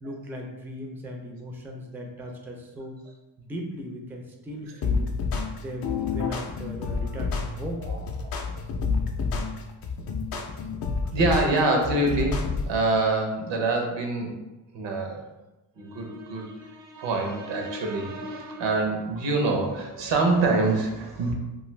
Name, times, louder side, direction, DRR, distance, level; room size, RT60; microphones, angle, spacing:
voice 1, 0.0-3.0 3.4-5.1 5.6-7.9, equal, 5° right, 2 dB, 0.3 m, -37 dB
sound 1, 4.8-12.8, left 4 dB, 60° left, 0.5 m, -29 dB
voice 2, 11.1-14.3 14.7-15.2 15.8-21.3, right 2 dB, 85° right, 2 dB, 0.7 m, -25 dB
2.5 x 2.4 x 3.1 m, 1.0 s
cardioid pair, 95°, 42 cm